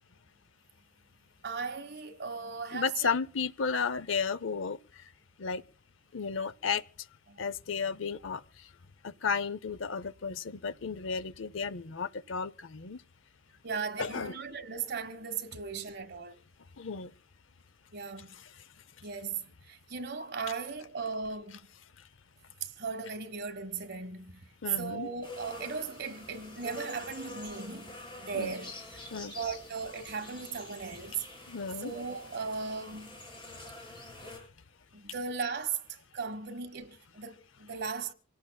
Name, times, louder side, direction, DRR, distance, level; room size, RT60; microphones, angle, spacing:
voice 1, 1.4-3.1 7.3-7.4 13.6-16.4 17.9-18.3 19.0-21.7 22.6-24.4 24.8-28.7 29.3-31.2 31.8-33.2 34.9-35.8 36.1-38.1, right 5 dB, 55° right, 1.5 m, -37 dB
voice 2, 2.7-4.8 5.4-5.6 6.1-6.8 7.4-8.4 9.0-13.0 14.0-14.4 16.8-17.1 24.6-25.1 28.3-28.5 29.1-29.3 31.5-31.9, left 5 dB, 75° left, 0.7 m, -33 dB
sound 1, 25.2-34.4, left 2 dB, 25° left, 8.0 m, -46 dB
26.0 x 17.5 x 2.3 m
head